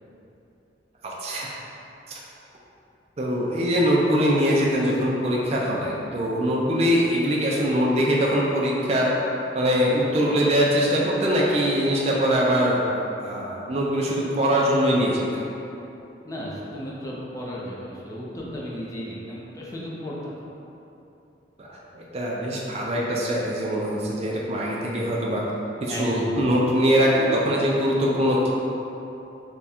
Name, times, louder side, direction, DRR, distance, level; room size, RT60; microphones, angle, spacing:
voice 1, 1.0-1.5 2.1-2.2 3.2-9.1 9.5-12.9 13.2-15.4 21.6-25.4 25.8-28.5, equal, 35° right, -4 dB, 0.4 m, -22 dB
voice 2, 16.2-20.4 25.9-26.5, equal, 20° left, -5 dB, 0.6 m, -34 dB
3.5 x 2.3 x 4.2 m, 2.9 s
head